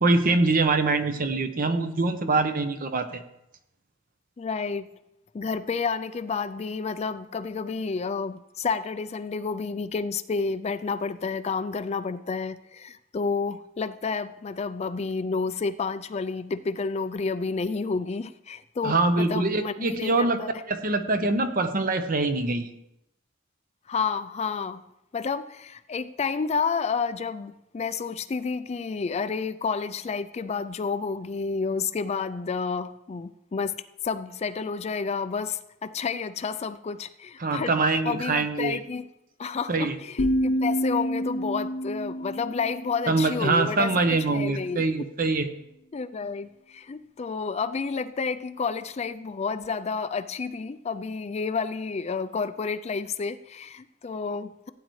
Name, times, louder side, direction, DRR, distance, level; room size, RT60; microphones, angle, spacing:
voice 1, 0.0-3.2 18.8-20.4 20.7-22.7 37.4-38.8 39.7-40.0 43.1-45.5, right 3 dB, 45° right, 0.9 m, -24 dB
voice 2, 4.4-4.9 5.3-20.5 23.9-24.8 25.1-33.8 34.0-37.7 38.0-39.1 39.4-45.1 45.9-54.7, left 5 dB, 35° left, 0.4 m, -30 dB
sound 1, 40.2-44.1, equal, 70° left, 0.9 m, -29 dB
16.0 x 9.2 x 3.2 m
head